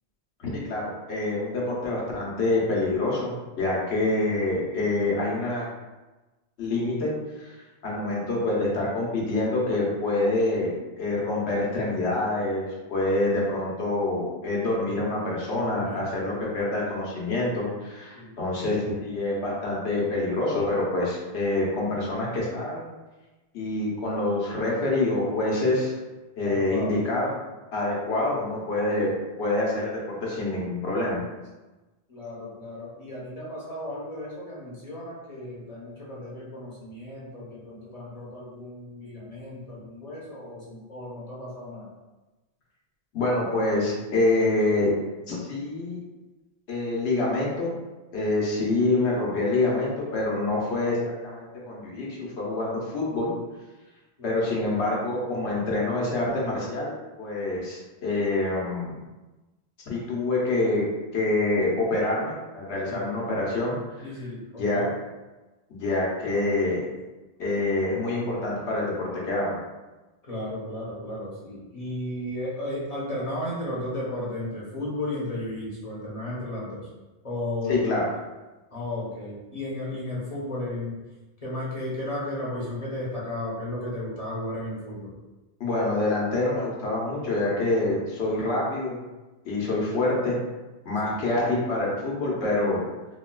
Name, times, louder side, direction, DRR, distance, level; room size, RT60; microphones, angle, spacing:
voice 1, 0.4-5.7 6.6-7.1 7.4-22.9 23.5-25.9 26.4-27.3 27.7-29.1 29.4-31.2 43.1-44.9 45.3-46.0 46.7-47.7 48.1-53.3 54.2-56.9 57.2-58.9 59.9-60.8 61.1-63.8 64.6-64.9 65.7-66.8 67.4-69.5 77.7-78.0 85.6-89.0 89.4-90.3 90.8-92.8, left 2 dB, 80° left, -4 dB, 1.1 m, -26 dB
voice 2, 18.1-18.4 26.4-27.0 27.9-28.1 32.1-41.9 54.2-54.5 62.9-63.3 64.0-64.9 70.2-76.9 77.2-78.2 78.7-81.0 81.4-85.1 91.1-91.2, left 1 dB, 40° left, -6 dB, 0.8 m, -34 dB
4.0 x 2.3 x 2.2 m, 1.1 s
omnidirectional pair, 1.1 m